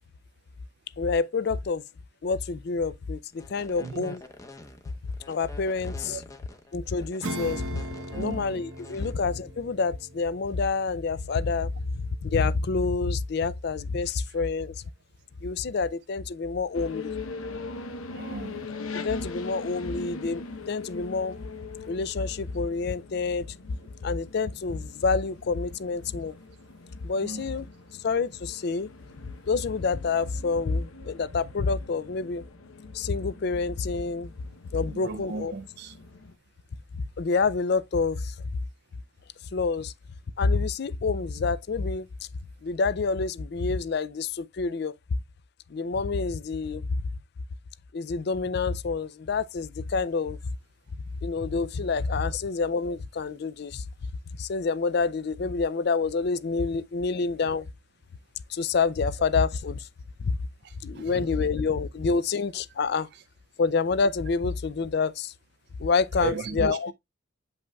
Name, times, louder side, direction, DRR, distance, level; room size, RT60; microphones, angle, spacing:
voice 1, 1.0-1.8 2.2-4.2 5.3-6.2 6.7-7.8 8.2-11.7 12.2-14.7 15.4-17.1 19.0-21.4 21.9-23.5 24.0-26.3 27.0-27.7 28.0-28.9 29.5-32.4 32.9-34.3 34.7-35.5 37.2-38.3 39.5-39.9 40.4-42.1 42.6-45.0 45.7-46.9 47.9-50.4 51.2-53.8 54.4-57.7 58.5-59.9 60.2-60.4 60.8-63.1 63.6-65.3 65.8-66.9, left 4 dB, 50° left, 0.4 m, -27 dB
sound 1, 3.3-9.1, left 2 dB, 15° left, 0.7 m, -46 dB
voice 2, 3.8-4.1 6.1-6.2 8.1-8.6 14.0-14.4 18.1-18.7 27.2-27.6 34.9-36.0 57.5-57.6 60.6-61.5 63.1-63.2 66.2-66.8, right 4 dB, 50° right, 0.4 m, -37 dB
Acoustic guitar / Strum, 7.2-13.2, right 1 dB, 80° right, 1.0 m, -40 dB
sound 2, 16.7-36.3, left 3 dB, 75° left, 0.9 m, -42 dB
8.0 x 5.4 x 2.3 m
head